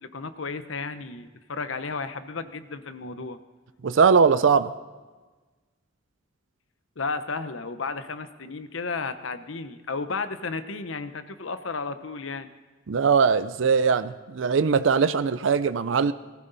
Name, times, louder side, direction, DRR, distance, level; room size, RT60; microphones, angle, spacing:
voice 1, 0.0-3.4 7.0-12.5, left 4 dB, 80° left, 11 dB, 0.9 m, -33 dB
voice 2, 3.8-4.7 12.9-16.1, right 5 dB, 75° right, 13 dB, 0.5 m, -21 dB
19.0 x 15.0 x 4.1 m, 1.3 s
head